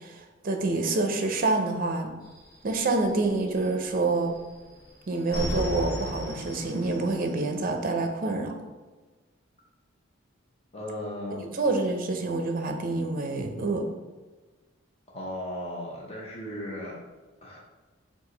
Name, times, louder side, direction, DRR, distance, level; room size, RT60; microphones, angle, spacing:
voice 1, 0.0-2.1 2.6-4.4 5.1-8.6 11.5-13.9, right 3 dB, 45° right, 4 dB, 0.5 m, -27 dB
sound 1, 2.2-3.9 4.2-7.7, equal, 45° left, 1.4 m, -35 dB
voice 2, 10.7-11.5 15.1-17.0 17.4-17.6, left 1 dB, 30° left, -3 dB, 0.8 m, -36 dB
4.6 x 2.4 x 3.9 m, 1.3 s
head